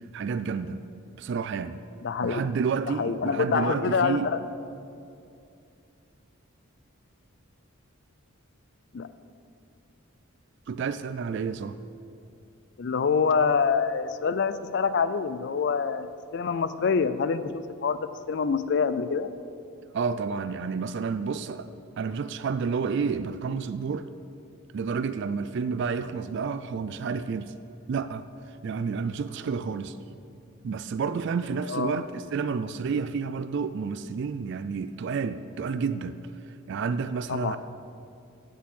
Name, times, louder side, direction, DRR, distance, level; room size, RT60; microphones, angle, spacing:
voice 1, 0.1-0.8 1.2-1.8 2.2-4.3 10.7-11.8 19.9-21.7 22.0-24.1 24.7-27.5 27.9-28.2 28.6-30.0 30.6-36.2 36.7-37.6, right 5 dB, 55° right, 11 dB, 0.3 m, -30 dB
voice 2, 2.0-2.4 3.0-4.4 8.9-9.1 12.8-17.4 17.8-19.3 31.7-32.0 37.3-37.6, left 5 dB, 50° left, 13 dB, 0.4 m, -26 dB
7.5 x 6.8 x 7.8 m, 2.5 s
head